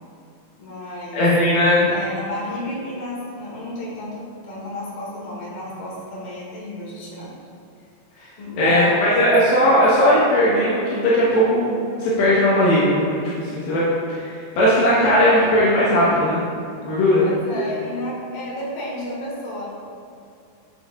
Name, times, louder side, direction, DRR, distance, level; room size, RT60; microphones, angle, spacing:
voice 1, 0.6-1.3 1.9-7.3 8.4-9.3 17.2-19.7, left 1 dB, 70° left, -6 dB, 3.6 m, -32 dB
voice 2, 1.1-1.9 8.6-16.4 16.8-17.2, equal, 85° left, -9 dB, 3.1 m, -18 dB
10.5 x 7.4 x 2.4 m, 2.5 s
omnidirectional pair, 4.1 m